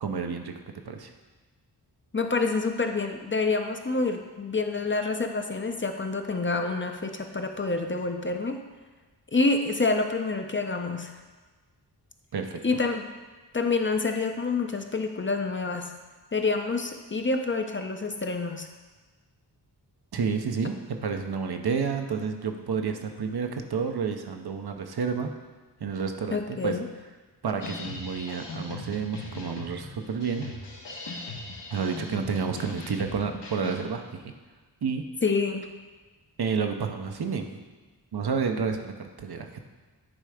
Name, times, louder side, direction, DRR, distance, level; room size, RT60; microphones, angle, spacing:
voice 1, 0.0-1.1 12.3-12.8 20.1-25.3 25.8-26.8 27.4-30.5 31.7-34.3 34.8-35.1 36.4-37.5 38.1-39.5, right 5 dB, 65° right, 5 dB, 0.7 m, -30 dB
voice 2, 2.1-8.6 9.3-11.1 12.6-13.1 13.5-15.9 16.3-18.7 26.3-26.9 35.2-35.7, left 3 dB, 30° left, 5 dB, 0.6 m, -27 dB
sound 1, 27.6-33.9, left 3 dB, 75° left, 1.4 m, -39 dB
9.9 x 3.3 x 4.9 m, 1.3 s
wide cardioid pair, 65°, 42 cm